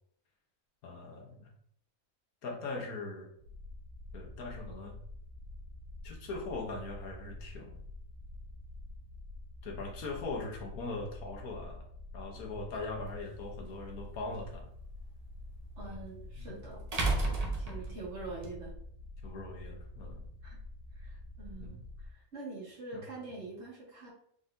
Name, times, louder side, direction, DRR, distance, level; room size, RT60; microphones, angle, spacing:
voice 1, 0.8-1.5 2.4-3.3 4.1-5.0 6.0-7.8 9.6-11.8 12.1-14.7 15.8-16.5 17.0-17.9 19.2-20.2 21.6-21.8 22.9-23.0, left 3 dB, 80° left, 0 dB, 1.5 m, -41 dB
sound 1, 3.4-22.1, left 2 dB, 85° right, 1.3 m, -47 dB
sound 2, 13.1-13.2 15.8-15.9 16.9-18.5, right 2 dB, 35° right, 0.8 m, -31 dB
voice 2, 15.8-16.9 17.6-18.7 20.4-20.6 20.9-24.1, right 3 dB, 50° right, -6 dB, 2.1 m, -45 dB
4.8 x 4.0 x 2.6 m, 0.64 s
omnidirectional pair, 1.5 m